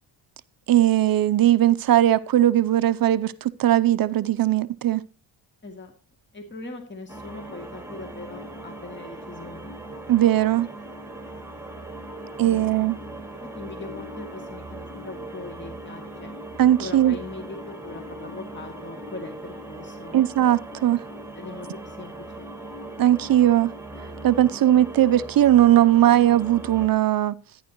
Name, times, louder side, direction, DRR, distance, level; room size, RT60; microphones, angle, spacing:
voice 1, 0.7-5.0 10.1-10.7 12.4-13.0 16.6-17.2 20.1-21.0 23.0-23.7 24.2-27.4, right 12 dB, 50° right, 0.6 m, -19 dB
voice 2, 5.6-5.9 6.3-9.8 12.4-12.9 13.3-16.3 16.8-20.2 21.3-22.5, left 3 dB, 25° left, 2.4 m, -40 dB
sound 1, 7.1-26.9, right 1 dB, 5° right, 2.4 m, -39 dB
13.5 x 10.0 x 3.0 m
cardioid pair, 100°, 45 cm